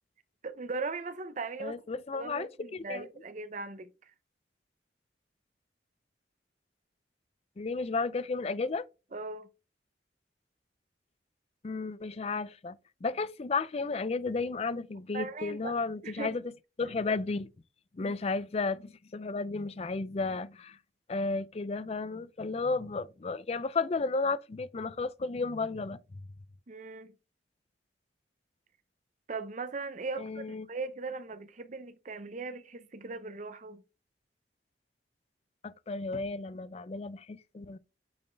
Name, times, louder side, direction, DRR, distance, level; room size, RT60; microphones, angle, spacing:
voice 1, 0.4-1.8 2.1-3.9 9.1-9.5 15.1-16.3 18.0-18.1 26.7-27.1 29.3-33.8, right 3 dB, 45° right, 0.7 m, -39 dB
voice 2, 1.6-3.1 7.6-8.8 11.6-16.4 16.8-17.5 17.9-20.8 21.1-26.0 30.2-30.7 35.6-37.8, left 3 dB, 35° left, 0.4 m, -33 dB
8.5 x 4.2 x 3.3 m
head